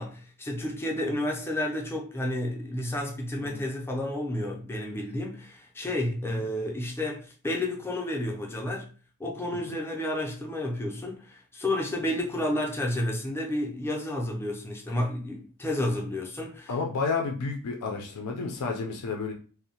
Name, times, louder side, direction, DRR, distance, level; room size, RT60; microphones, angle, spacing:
voice 1, 0.0-8.9 9.2-16.7, left 1 dB, 10° left, 0.4 m, -31 dB
voice 2, 16.7-19.3, left 4 dB, 90° left, 0.4 m, -31 dB
2.6 x 2.0 x 2.7 m
head